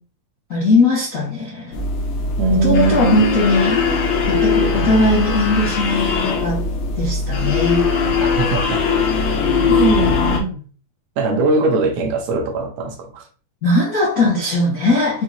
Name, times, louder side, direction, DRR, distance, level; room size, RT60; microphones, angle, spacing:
voice 1, 0.5-1.8 2.5-3.8 4.3-6.6 7.0-7.9 13.6-15.2, left 2 dB, 55° left, 0.9 m, -19 dB
sound 1, 1.7-10.4, left 4 dB, 90° left, 1.3 m, -20 dB
voice 2, 2.4-3.2 8.2-8.8 9.7-10.6 11.2-13.3, right 3 dB, 75° right, 1.5 m, -20 dB
6.0 x 2.9 x 2.7 m
omnidirectional pair, 4.1 m